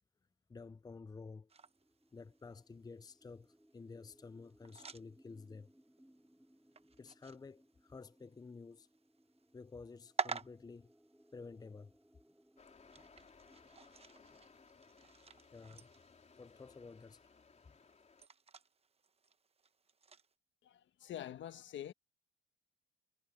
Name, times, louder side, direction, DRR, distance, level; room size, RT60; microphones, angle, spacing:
voice 1, 0.5-1.5 2.1-5.7 7.0-8.9 9.5-10.9 11.3-12.0 13.0-13.1 14.3-14.4 15.5-15.9 16.4-17.3 17.7-17.8, left 4 dB, 20° left, 0.6 m, -52 dB
sound 1, 1.5-20.3, right 5 dB, 30° right, 1.0 m, -50 dB
sound 2, 1.6-17.2, equal, 5° right, 4.9 m, -69 dB
sound 3, 12.6-18.3, left 5 dB, 35° left, 3.7 m, -63 dB
voice 2, 20.6-21.9, left 11 dB, 70° left, 1.3 m, -46 dB
cardioid pair, 90°, 20 cm